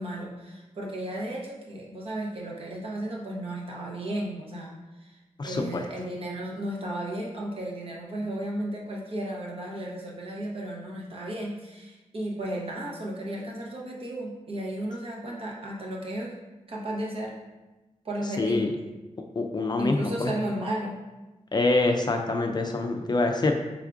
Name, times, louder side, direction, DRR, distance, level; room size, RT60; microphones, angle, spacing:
voice 1, 0.0-16.4 16.7-17.4 18.0-18.7 19.8-21.0, right 1 dB, 50° right, -2 dB, 0.8 m, -34 dB
voice 2, 5.4-5.8 18.4-18.7 19.4-20.3 21.5-23.6, left 2 dB, 35° left, 4 dB, 0.4 m, -25 dB
4.6 x 3.4 x 2.5 m, 1.1 s
wide cardioid pair, 140°, 12 cm